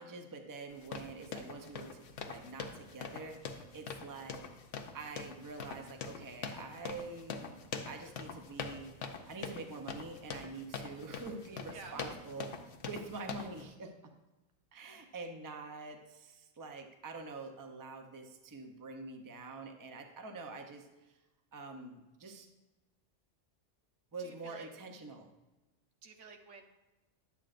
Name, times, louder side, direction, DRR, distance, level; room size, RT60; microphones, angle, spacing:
voice 1, 0.0-4.4 4.9-7.6 7.8-8.9 9.3-12.5 12.8-13.9 14.7-21.2 21.5-22.5 24.1-25.3, right 3 dB, 20° right, 4 dB, 0.6 m, -46 dB
sound 1, 0.7-13.6, left 5 dB, 80° left, 1.1 m, -44 dB
voice 2, 11.7-12.2 24.2-24.7 26.0-26.6, right 4 dB, 85° right, 3 dB, 1.3 m, -51 dB
11.0 x 8.3 x 2.5 m, 1.1 s
omnidirectional pair, 1.2 m